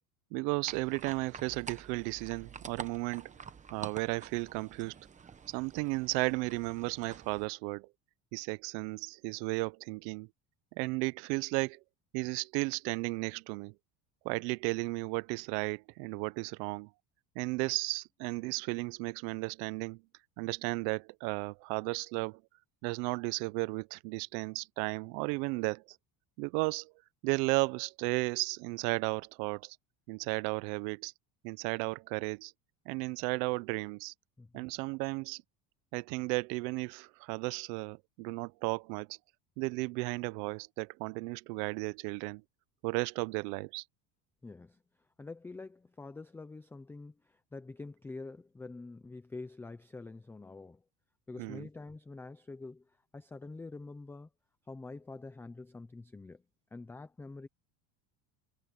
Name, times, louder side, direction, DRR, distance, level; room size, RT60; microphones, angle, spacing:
voice 1, 0.3-3.3 3.7-5.0 5.5-7.9 8.3-10.3 10.8-11.8 12.1-13.7 14.2-16.9 17.4-20.0 20.4-22.4 22.8-26.0 26.4-26.9 27.2-29.8 30.1-31.1 31.4-32.5 32.9-34.1 34.5-35.4 35.9-39.2 39.6-42.4 42.8-43.8 51.4-51.7, right 27 dB, 85° right, 0.7 m, -34 dB
sound 1, 0.7-7.5, right 6 dB, 15° right, 0.9 m, -48 dB
voice 2, 44.4-44.8 45.2-50.8 51.3-54.3 54.7-56.4 56.7-57.5, left 3 dB, 5° left, 0.3 m, -46 dB
cardioid pair, 160°, 46 cm